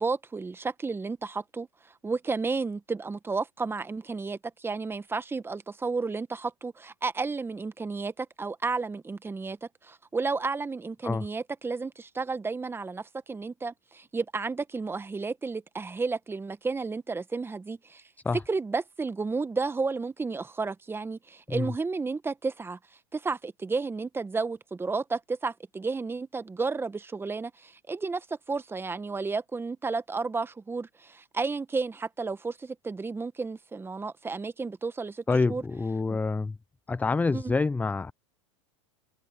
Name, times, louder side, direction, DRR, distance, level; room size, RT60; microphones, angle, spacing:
voice 1, 0.0-1.7 2.0-18.0 18.5-22.8 23.1-35.6 36.1-36.2 37.3-37.5, right 4 dB, 15° right, 1.4 m, -32 dB
voice 2, 35.3-36.6 36.9-38.1, left 3 dB, 10° left, 0.5 m, -27 dB
hypercardioid pair, 105°, 17 cm